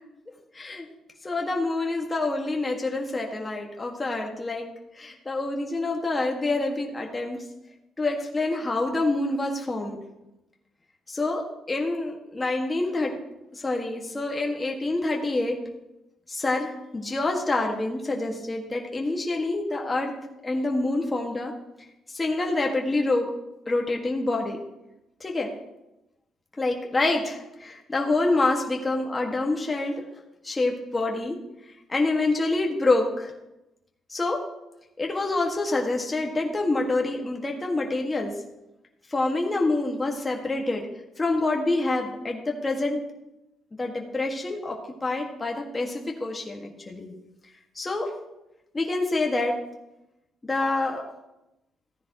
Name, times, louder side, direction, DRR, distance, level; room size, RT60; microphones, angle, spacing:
voice 1, 0.5-0.9 1.2-4.7 5.0-7.4 8.0-10.0 11.1-13.1 13.5-15.6 16.3-20.1 20.4-21.5 22.1-23.3 23.7-24.6 25.2-25.5 26.6-30.0 30.4-31.4 31.9-33.3 34.1-34.4 35.0-38.3 39.1-40.8 41.2-43.0 43.8-47.1 47.7-48.1 48.7-49.6 50.4-51.0, left 2 dB, 20° left, 0 dB, 1.7 m, -27 dB
15.0 x 10.0 x 3.0 m, 0.93 s
cardioid pair, 90°, 0 cm